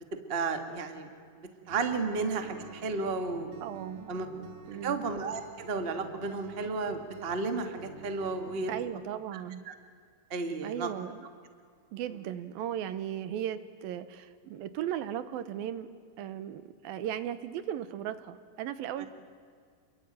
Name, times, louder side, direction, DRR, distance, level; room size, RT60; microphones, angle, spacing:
voice 1, 0.1-1.1 1.7-3.5 4.1-4.3 4.7-8.7 9.3-9.4 9.6-9.7 10.3-10.9 19.0-19.1, right 4 dB, 30° right, 6 dB, 1.2 m, -33 dB
Acoustic guitar, 1.7-8.9, right 6 dB, 60° right, 2.2 m, -50 dB
voice 2, 3.6-4.1 4.7-5.0 8.7-9.6 10.6-11.2 11.9-15.9 16.2-19.1, right 10 dB, 80° right, 12 dB, 2.7 m, -36 dB
29.0 x 22.5 x 9.1 m, 2.1 s
omnidirectional pair, 4.4 m